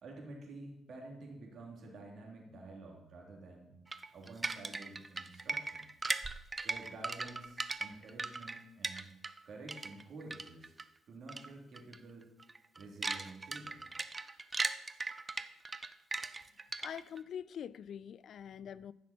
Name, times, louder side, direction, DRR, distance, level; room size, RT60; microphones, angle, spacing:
voice 1, 0.0-3.7 4.1-5.9 6.6-9.1 9.4-10.7 11.1-12.3 12.7-13.8, right 2 dB, 65° right, 3.0 m, -50 dB
sound 1, 3.9-9.4 9.7-10.8 11.3-11.5 11.7-12.0 12.4-17.2, right 3 dB, 25° right, 0.5 m, -38 dB
voice 2, 16.8-18.9, left 8 dB, 65° left, 0.3 m, -44 dB
15.0 x 6.1 x 4.4 m
cardioid pair, 90°, 0 cm